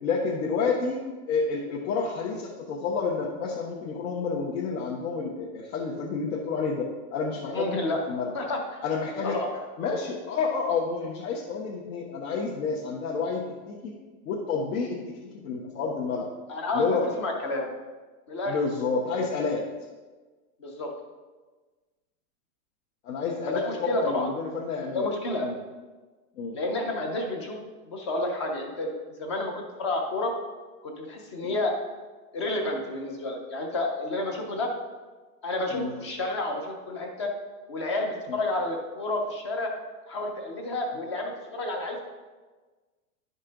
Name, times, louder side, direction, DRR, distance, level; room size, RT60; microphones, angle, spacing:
voice 1, 0.0-7.8 8.1-8.3 8.8-9.4 9.8-13.9 14.2-15.2 15.4-16.3 16.7-17.1 18.5-19.6 23.0-25.1 25.4-25.6 26.4-26.5 31.4-31.6 34.3-34.4 35.7-35.9 38.3-38.4, left 4 dB, 80° left, -3 dB, 1.3 m, -29 dB
voice 2, 7.5-8.0 8.3-8.8 9.2-9.5 16.5-17.7 18.3-18.6 20.6-20.9 23.5-24.3 24.9-25.5 26.5-27.6 27.9-30.3 30.8-31.8 32.3-34.7 35.4-37.3 37.7-39.7 40.1-42.0, left 2 dB, 20° left, 2 dB, 0.3 m, -30 dB
10.5 x 5.4 x 3.8 m, 1.3 s
supercardioid pair, 175°, 44 cm